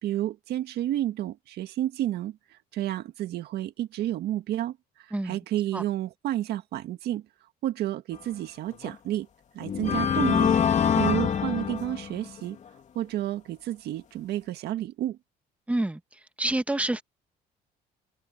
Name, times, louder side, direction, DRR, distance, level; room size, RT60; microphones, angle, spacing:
voice 1, 0.0-7.3 7.6-9.3 9.5-10.5 11.0-12.6 13.0-15.2, right 13 dB, 75° right, 1.9 m, -31 dB
sound 1, 8.7-8.9 9.6-12.4, left 8 dB, 45° left, 2.8 m, -25 dB
voice 2, 15.7-16.0 16.4-17.0, right 1 dB, 10° right, 2.0 m, -27 dB
cardioid pair, 110°, 17 cm